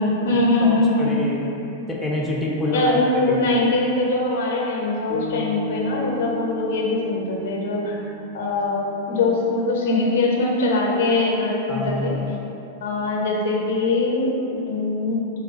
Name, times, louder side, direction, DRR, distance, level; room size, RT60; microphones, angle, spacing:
voice 1, 0.0-1.2 2.7-8.1 8.3-12.1 12.8-15.2, left 2 dB, 65° left, -2 dB, 0.6 m, -22 dB
voice 2, 0.6-1.5 1.9-2.8 3.3-3.5 11.7-12.3, left 2 dB, 15° left, -3 dB, 0.5 m, -27 dB
sound 1, 5.1-9.5, left 1 dB, 40° right, 1.0 m, -35 dB
3.2 x 2.2 x 3.9 m, 2.7 s
figure-of-eight pair, 95°, 0 cm